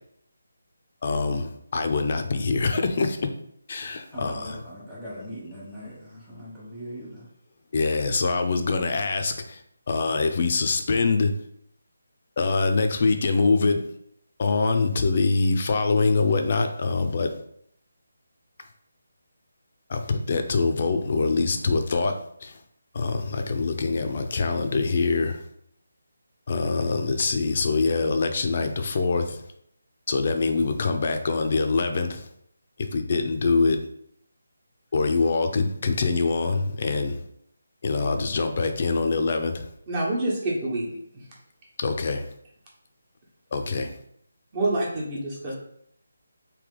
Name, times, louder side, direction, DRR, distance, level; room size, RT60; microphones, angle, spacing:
voice 1, 1.0-3.3 3.7-4.6 7.7-9.6 9.9-11.3 12.4-13.8 14.4-17.3 19.9-22.2 22.4-22.6 22.9-25.4 26.5-29.4 30.1-32.3 32.8-33.8 34.9-37.2 37.8-39.7 41.8-42.2 43.5-43.9, left 4 dB, 45° left, 6 dB, 0.5 m, -24 dB
voice 2, 4.1-7.3, equal, 5° right, -12 dB, 1.2 m, -40 dB
voice 3, 39.9-41.3 44.5-45.6, right 2 dB, 25° right, -4 dB, 1.1 m, -27 dB
3.3 x 2.8 x 3.9 m, 0.69 s
figure-of-eight pair, 160°, 0 cm